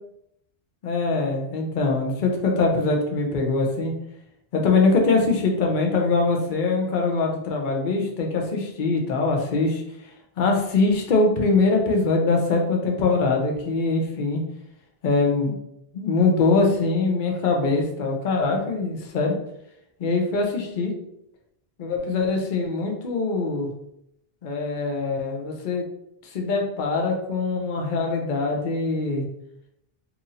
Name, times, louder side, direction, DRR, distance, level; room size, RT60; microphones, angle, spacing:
voice 1, 0.8-3.9 4.5-9.8 10.4-14.4 15.0-15.5 15.9-19.4 20.0-20.9 21.8-23.7 24.4-25.8 26.2-29.2, left 3 dB, 55° left, 1 dB, 0.7 m, -23 dB
2.8 x 2.5 x 4.0 m, 0.77 s
omnidirectional pair, 1.0 m